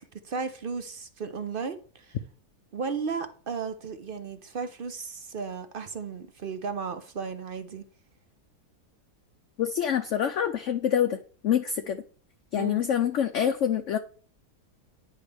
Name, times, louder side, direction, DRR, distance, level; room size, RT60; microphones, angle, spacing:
voice 1, 0.2-2.2 2.7-7.8 12.5-12.8, right 5 dB, 50° right, 0.6 m, -34 dB
voice 2, 9.6-11.2 11.4-12.0 12.5-14.0, left 9 dB, 60° left, 0.8 m, -26 dB
9.7 x 5.6 x 3.3 m
omnidirectional pair, 1.7 m